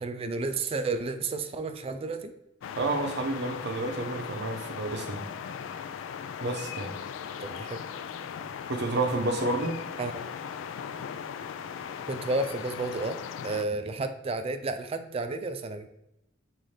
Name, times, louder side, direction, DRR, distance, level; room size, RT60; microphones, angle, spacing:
voice 1, 0.0-2.3 7.4-7.8 10.0-10.1 12.1-13.2 13.4-15.9, right 3 dB, 30° right, 8 dB, 0.3 m, -31 dB
sound 1, 2.6-13.6, left 7 dB, 85° left, 0.3 m, -38 dB
voice 2, 2.8-5.2 6.4-6.9 8.7-9.8, right 2 dB, 65° right, 4 dB, 0.7 m, -30 dB
5.5 x 2.5 x 3.2 m, 0.86 s
head